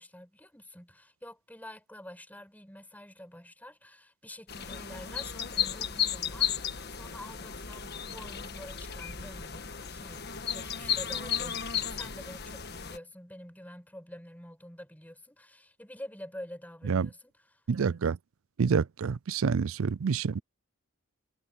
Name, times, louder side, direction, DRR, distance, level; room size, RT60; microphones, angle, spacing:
voice 1, 0.0-10.3 10.5-17.6, left 1 dB, 5° left, 5.9 m, -47 dB
sound 1, 4.5-13.0, left 8 dB, 50° left, 1.5 m, -34 dB
voice 2, 17.7-18.2 18.6-20.4, right 5 dB, 70° right, 0.4 m, -27 dB
head